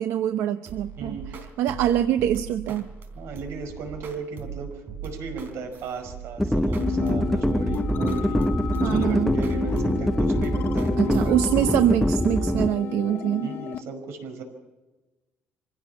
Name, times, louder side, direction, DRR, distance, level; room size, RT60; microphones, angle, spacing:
voice 1, 0.0-1.2 1.6-2.9 8.8-9.3 11.0-13.5, right 11 dB, 85° right, 9 dB, 0.8 m, -24 dB
sound 1, 0.7-11.3, right 8 dB, 45° right, 3.7 m, -39 dB
voice 2, 1.0-1.5 3.1-8.5 8.8-11.4 13.4-14.4, right 4 dB, 70° right, 6 dB, 5.2 m, -36 dB
sound 2, 6.4-12.7, equal, 5° left, 0.6 m, -24 dB
sound 3, 6.8-13.8, left 11 dB, 50° left, 0.8 m, -33 dB
25.0 x 16.5 x 7.1 m, 1.1 s
cardioid pair, 155°, 5 cm